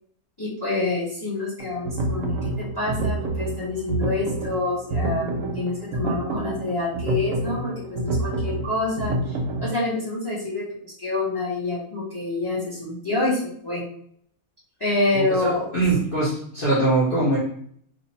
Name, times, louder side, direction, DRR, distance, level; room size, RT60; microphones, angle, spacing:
voice 1, 0.4-13.8 14.8-15.6 16.7-16.8, left 2 dB, 15° left, -8 dB, 1.0 m, -27 dB
sound 1, 1.6-9.7, right 2 dB, 65° right, 0.9 m, -28 dB
voice 2, 15.1-17.4, right 2 dB, 40° left, -8 dB, 1.2 m, -22 dB
2.9 x 2.5 x 4.2 m, 0.63 s
omnidirectional pair, 1.6 m